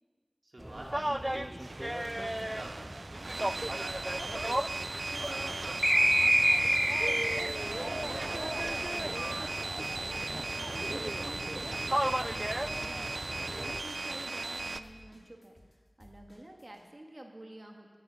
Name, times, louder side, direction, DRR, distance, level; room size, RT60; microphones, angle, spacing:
voice 1, 0.4-4.7 5.1-10.0, right 1 dB, 65° right, -2 dB, 2.5 m, -49 dB
sound 1, 0.6-13.8, right 1 dB, 20° right, 0.3 m, -32 dB
sound 2, 1.6-14.8, right 3 dB, 90° right, 0.4 m, -37 dB
sound 3, 7.5-8.7 8.9-16.9, left 1 dB, 50° left, 2.0 m, -57 dB
voice 2, 8.9-9.2 11.0-18.0, right 1 dB, 45° right, 2 dB, 1.8 m, -50 dB
10.5 x 10.0 x 7.0 m, 1.5 s
wide cardioid pair, 40°, 0 cm